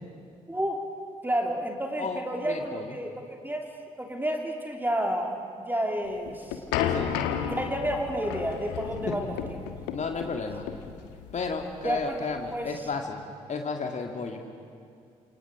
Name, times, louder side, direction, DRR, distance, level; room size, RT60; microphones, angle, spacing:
voice 1, 0.5-0.8 1.2-3.6 4.0-5.4 5.6-6.6 7.5-9.3 11.8-12.2 12.5-12.7, right 1 dB, 10° right, 1 dB, 2.8 m, -30 dB
voice 2, 2.0-3.0 6.9-7.2 9.0-9.3 9.9-10.7 11.3-13.2 13.5-14.4, left 4 dB, 40° left, 3 dB, 2.3 m, -33 dB
sound 1, 6.1-12.9, left 8 dB, 65° left, 1.5 m, -33 dB
30.0 x 27.5 x 5.0 m, 2.3 s
figure-of-eight pair, 40°, 18 cm